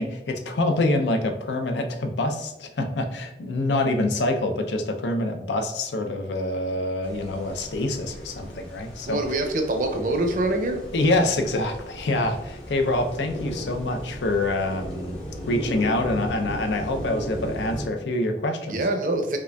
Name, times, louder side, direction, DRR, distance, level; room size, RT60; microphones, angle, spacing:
voice 1, 0.0-9.2 10.9-15.2 15.5-18.9, left 2 dB, 85° left, 6 dB, 0.5 m, -26 dB
sound 1, 7.0-17.9, equal, 35° left, 1.0 m, -36 dB
voice 2, 9.1-10.8 18.7-19.4, right 2 dB, 45° right, 4 dB, 0.5 m, -25 dB
5.0 x 2.4 x 2.2 m, 0.91 s
head